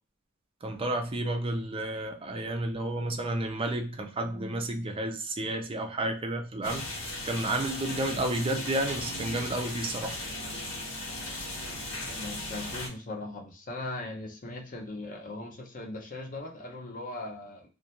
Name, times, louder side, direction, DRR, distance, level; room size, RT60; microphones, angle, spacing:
voice 1, 0.6-6.9 7.3-10.2, right 1 dB, 30° right, 0.4 m, -31 dB
sound 1, 6.6-12.9, left 1 dB, 85° left, 0.9 m, -37 dB
voice 2, 12.2-17.7, left 2 dB, 40° left, 0.6 m, -39 dB
2.4 x 2.2 x 2.8 m
head